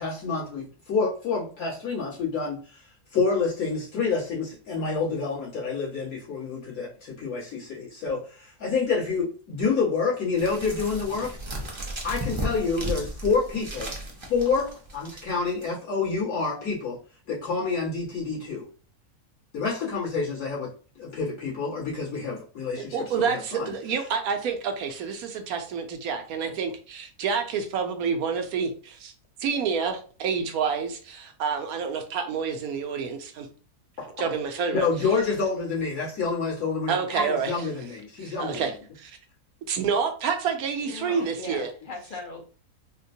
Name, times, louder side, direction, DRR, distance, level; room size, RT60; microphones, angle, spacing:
voice 1, 0.0-2.8 3.1-11.6 12.0-13.9 14.3-17.0 17.3-18.7 19.5-20.7 21.0-23.7 34.0-34.1 34.7-38.7, left 4 dB, 70° left, -7 dB, 2.1 m, -28 dB
sound 1, 10.4-15.7, right 1 dB, 30° right, 0.5 m, -34 dB
voice 2, 22.8-29.1 29.4-33.5 34.2-34.9 36.9-37.7 38.2-39.2 39.7-41.7, right 6 dB, 75° right, 6 dB, 1.1 m, -28 dB
voice 3, 40.8-42.4, left 3 dB, 45° left, 1 dB, 0.8 m, -39 dB
4.2 x 2.2 x 2.7 m, 0.39 s
omnidirectional pair, 1.6 m